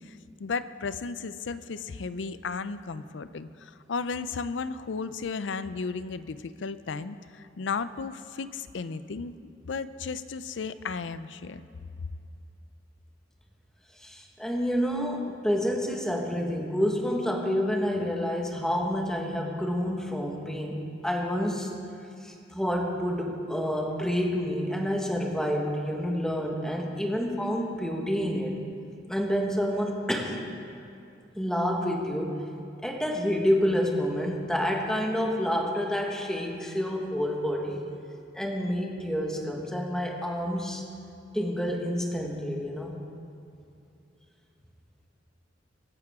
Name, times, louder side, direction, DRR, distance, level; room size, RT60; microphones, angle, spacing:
voice 1, 0.0-9.3 9.7-11.6, left 4 dB, 70° left, 14 dB, 0.5 m, -34 dB
voice 2, 14.0-21.7 22.2-28.5 29.1-30.4 31.4-32.3 32.8-37.9 38.3-40.8 41.3-43.0, equal, 5° left, 0 dB, 1.4 m, -28 dB
23.5 x 9.5 x 3.7 m, 2.6 s
head